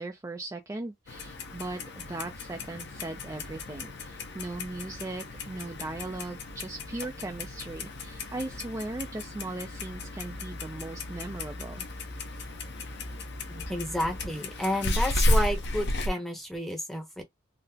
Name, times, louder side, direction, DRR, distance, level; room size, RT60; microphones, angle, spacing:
voice 1, 0.0-11.9, right 2 dB, 15° right, 0.3 m, -38 dB
Clock, 1.1-16.1, left 1 dB, 55° left, 0.7 m, -33 dB
voice 2, 13.5-17.2, equal, ahead, 0.8 m, -31 dB
3.9 x 2.0 x 2.7 m
head